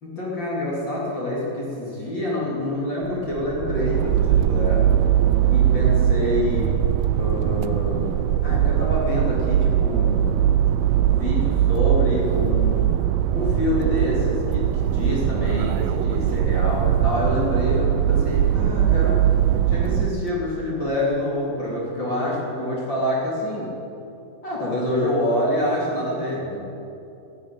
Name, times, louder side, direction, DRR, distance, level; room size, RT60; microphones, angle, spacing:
voice 1, 0.0-4.9 5.4-6.8 7.1-8.2 8.4-10.4 11.0-13.0 13.3-19.2 19.7-23.8 24.4-26.6, left 1 dB, 30° left, -5 dB, 3.0 m, -26 dB
sound 1, 3.0-20.3, right 10 dB, 85° right, 2.0 m, -21 dB
14.0 x 10.5 x 9.3 m, 2.9 s
omnidirectional pair, 4.7 m